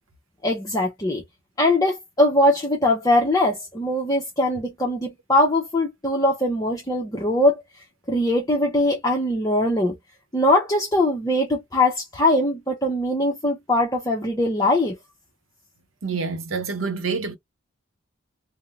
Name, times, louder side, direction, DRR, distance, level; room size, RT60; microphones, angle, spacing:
voice 1, 0.4-1.2 1.6-7.6 8.1-10.0 10.3-15.0, left 1 dB, 15° left, 0.7 m, -21 dB
voice 2, 16.0-17.4, right 4 dB, 90° right, 0.8 m, -27 dB
3.6 x 2.1 x 2.6 m
head